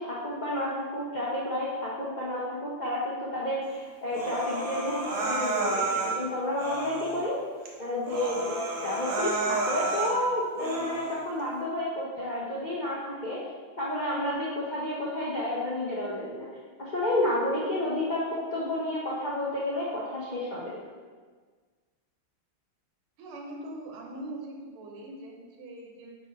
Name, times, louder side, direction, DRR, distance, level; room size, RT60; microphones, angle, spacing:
voice 1, 0.0-7.4 7.8-8.5 8.8-13.0 13.2-13.4 13.8-16.5 16.9-20.8, left 1 dB, 75° left, -7 dB, 0.4 m, -30 dB
Human voice, 4.1-6.2 6.6-7.2 7.7-7.8 8.0-10.2 10.6-11.2, right 3 dB, 50° right, 0.7 m, -31 dB
voice 2, 23.2-26.2, right 1 dB, 85° right, 1 dB, 1.8 m, -41 dB
4.4 x 4.2 x 5.2 m, 1.5 s
omnidirectional pair, 2.3 m